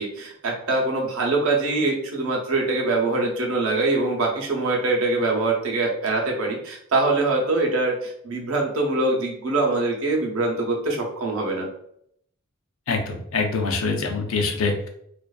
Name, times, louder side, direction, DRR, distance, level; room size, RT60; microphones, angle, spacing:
voice 1, 0.0-11.7, right 2 dB, 85° right, -1 dB, 0.7 m, -23 dB
voice 2, 12.9-14.9, left 4 dB, 75° left, 3 dB, 0.5 m, -24 dB
2.4 x 2.2 x 2.3 m, 0.71 s
head